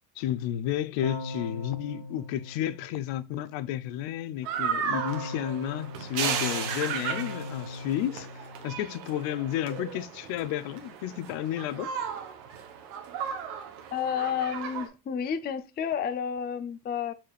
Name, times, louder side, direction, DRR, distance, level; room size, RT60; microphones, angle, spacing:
voice 1, 0.2-11.9, left 12 dB, 65° left, 0.7 m, -32 dB
Keyboard (musical), 1.0-3.3 4.9-9.2, left 1 dB, 35° right, 1.5 m, -39 dB
sound 1, 4.4-14.9, right 7 dB, 85° right, 1.2 m, -35 dB
voice 2, 13.9-17.1, left 7 dB, 20° left, 0.4 m, -31 dB
4.8 x 4.3 x 2.3 m
supercardioid pair, 90°, 49 cm